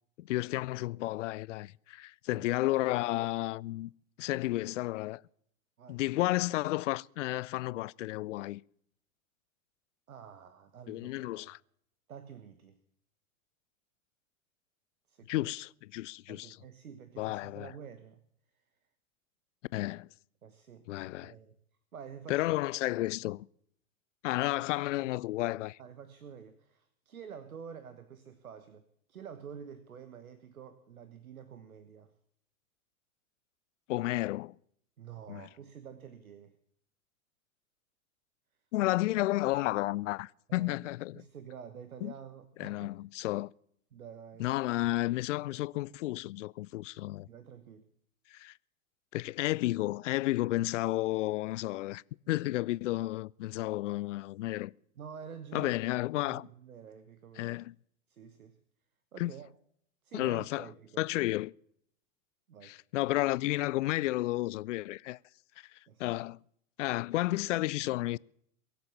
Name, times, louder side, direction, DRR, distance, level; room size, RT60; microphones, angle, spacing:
voice 1, 0.2-3.9 4.2-5.2 5.9-8.6 10.9-11.6 15.3-16.6 17.2-17.7 19.7-20.1 20.9-21.3 22.3-23.5 24.2-25.8 33.9-34.5 35.3-35.5 38.7-41.2 42.0-42.1 42.6-43.5 44.4-47.3 48.3-48.5 49.1-54.7 55.5-56.5 57.4-57.7 59.2-59.3 60.1-60.7 61.0-61.5 62.6-65.2 65.6-65.7 66.0-66.4 66.8-68.2, left 17 dB, 60° left, 0.5 m, -32 dB
voice 2, 2.3-2.8 5.8-6.0 10.1-11.5 12.1-12.8 15.1-15.5 16.3-18.2 20.4-20.9 21.2-21.6 21.9-22.5 22.9-23.0 24.4-24.5 25.8-28.8 29.1-32.1 35.0-36.6 40.5-40.8 41.1-43.0 43.9-44.5 47.3-47.9 55.0-55.8 56.1-57.6 58.1-58.6 59.1-59.5 60.0-61.0 62.5-62.8 65.9-66.1, right 7 dB, 80° right, 1.2 m, -49 dB
23.0 x 7.8 x 7.2 m
figure-of-eight pair, 95°, 42 cm